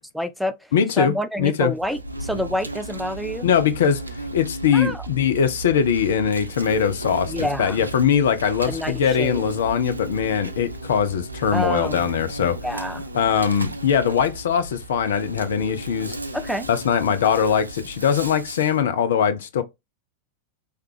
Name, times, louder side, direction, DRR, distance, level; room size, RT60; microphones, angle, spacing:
voice 1, 0.1-0.7 1.0-3.5 4.7-5.0 7.3-7.8 8.7-9.4 11.5-12.0 12.4-13.1 16.3-16.7, equal, ahead, 0.4 m, -28 dB
voice 2, 0.7-1.7 3.4-4.0 4.3-7.3 7.6-12.6 13.1-16.2 16.7-19.6, left 7 dB, 60° left, 0.4 m, -21 dB
Insect, 1.8-18.8, right 2 dB, 80° right, 0.3 m, -35 dB
3.2 x 2.3 x 3.2 m
figure-of-eight pair, 90°, 0 cm